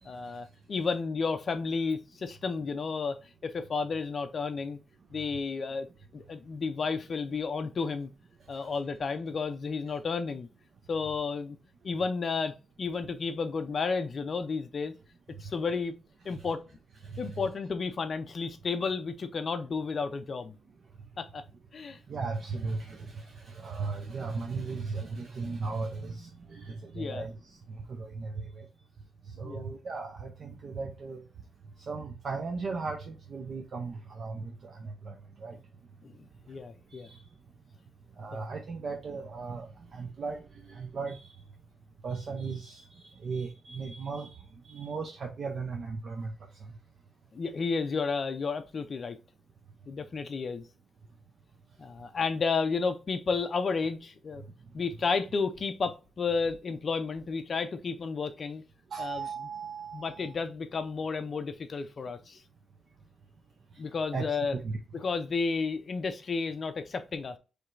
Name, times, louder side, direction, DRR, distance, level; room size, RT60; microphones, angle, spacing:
voice 1, 0.0-3.2 3.4-4.8 5.1-5.9 6.1-8.1 8.5-10.5 10.9-11.6 11.8-14.9 15.4-15.9 16.2-16.6 17.2-20.6 21.2-21.4 21.7-22.0 26.9-27.3 29.4-29.6 36.0-37.1 38.3-38.4 47.3-49.2 49.9-50.7 51.8-54.4 54.7-58.6 59.0-59.3 59.9-62.4 63.8-64.5 65.0-67.4, left 4 dB, 35° left, 0.5 m, -32 dB
voice 2, 17.0-17.5 22.1-28.7 29.4-31.2 31.9-35.6 36.9-37.2 38.2-41.3 42.0-46.3 58.9-60.3 64.1-64.8, right 4 dB, 40° right, 0.6 m, -37 dB
4.8 x 3.2 x 2.5 m
wide cardioid pair, 170°, 0 cm